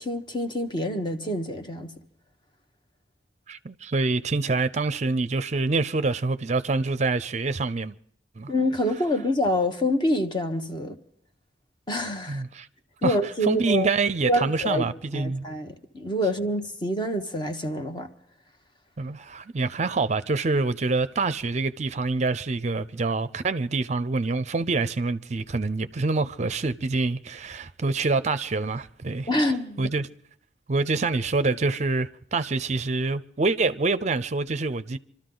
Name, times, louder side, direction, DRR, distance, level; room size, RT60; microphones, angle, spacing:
voice 1, 0.0-1.9 8.5-11.0 11.9-12.4 13.0-13.9 14.3-14.9 15.1-18.1 29.3-29.9, left 1 dB, 25° left, 1.2 m, -26 dB
voice 2, 3.5-8.0 8.4-8.5 12.3-12.7 13.0-13.2 13.4-15.5 19.0-29.3 29.8-30.1 30.7-35.0, right 3 dB, 40° right, 0.5 m, -26 dB
26.5 x 13.0 x 3.9 m
head